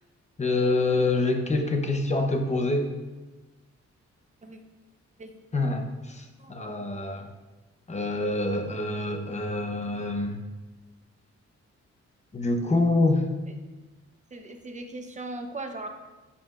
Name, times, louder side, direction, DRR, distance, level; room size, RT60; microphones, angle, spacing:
voice 1, 0.4-2.9 5.5-7.3 7.9-10.4 12.3-13.3, left 2 dB, 25° left, 4 dB, 0.7 m, -26 dB
voice 2, 6.4-6.8 14.3-15.9, right 2 dB, 25° right, 5 dB, 0.7 m, -39 dB
8.3 x 7.6 x 2.4 m, 1.2 s
wide cardioid pair, 150°, 29 cm